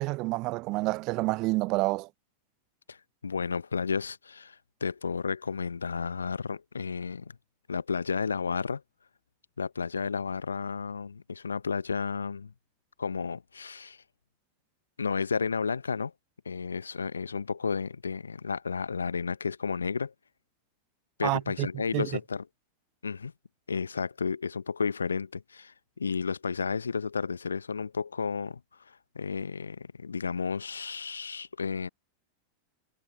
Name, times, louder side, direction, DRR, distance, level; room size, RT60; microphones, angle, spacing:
voice 1, 0.0-2.1 21.2-21.7 21.9-22.1, right 22 dB, 40° right, 0.8 m, -28 dB
voice 2, 3.2-7.3 7.7-8.8 9.6-12.5 13.0-14.0 15.0-16.1 16.4-20.1 21.2-22.4 23.0-23.3 23.7-28.6 29.1-31.9, left 5 dB, 75° left, 1.1 m, -32 dB
figure-of-eight pair, 90°, 0 cm